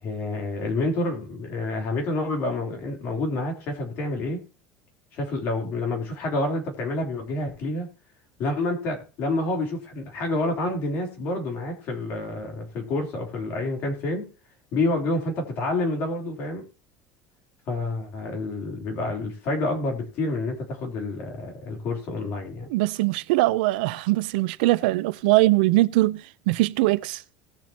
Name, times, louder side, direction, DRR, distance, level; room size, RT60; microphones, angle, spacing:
voice 1, 0.0-4.4 5.1-7.9 8.4-14.3 14.7-16.6 17.7-22.7, left 2 dB, 45° left, 3.3 m, -28 dB
voice 2, 22.7-27.2, right 19 dB, 80° right, 0.5 m, -22 dB
18.5 x 7.4 x 2.9 m
cardioid pair, 160°, 5 cm